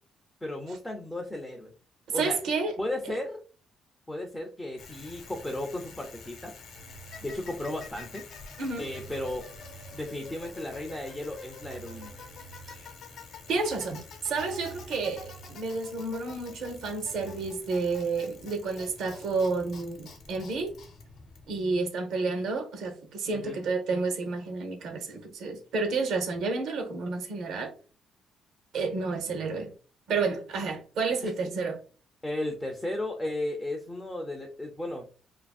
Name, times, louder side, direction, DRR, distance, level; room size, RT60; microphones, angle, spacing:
voice 1, 0.4-1.7 2.1-2.4 2.8-3.4 4.1-6.5 7.2-8.3 8.8-9.5 9.9-12.1 23.3-23.6 31.2-31.3 32.2-35.1, left 1 dB, 5° left, 0.3 m, -35 dB
voice 2, 2.1-2.8 8.6-8.8 13.5-20.7 21.5-27.7 28.7-29.7 30.1-31.8, right 4 dB, 70° right, 0.7 m, -30 dB
Bicycle, 4.8-21.8, left 4 dB, 60° left, 0.7 m, -47 dB
sound 1, 6.7-8.0 8.3-8.4 8.9-10.8 11.1-11.2 11.6-13.6 13.8-13.9 14.4-16.3 16.6-16.7 17.2-17.5, right 7 dB, 90° right, 1.1 m, -51 dB
2.7 x 2.5 x 2.3 m
cardioid pair, 150°, 0 cm